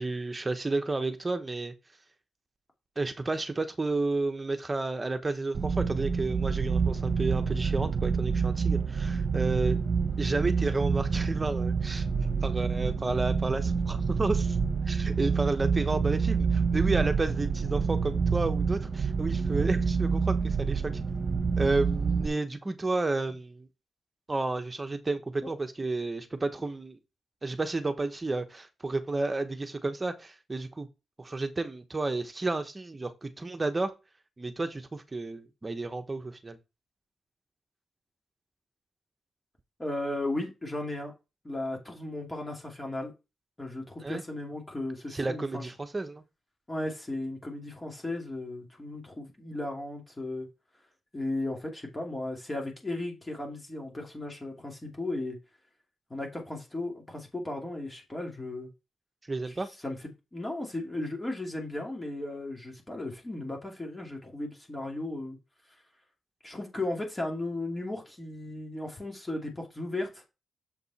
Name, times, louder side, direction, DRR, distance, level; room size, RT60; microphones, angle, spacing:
voice 1, 0.0-1.7 3.0-9.8 10.2-12.1 12.4-14.6 14.9-21.0 21.6-23.7 24.3-27.0 27.4-30.9 31.2-33.9 34.4-36.6 44.0-44.2 45.1-46.2 59.3-59.7, right 3 dB, 25° right, 1.1 m, -31 dB
sound 1, 5.5-22.3, right 5 dB, 50° right, 1.1 m, -28 dB
voice 2, 39.8-41.1 41.4-43.1 43.6-45.7 46.7-50.5 51.1-55.4 56.1-58.7 59.5-60.0 60.3-65.4 66.4-70.2, left 2 dB, 20° left, 2.7 m, -35 dB
7.5 x 5.3 x 4.2 m
cardioid pair, 90°, 0 cm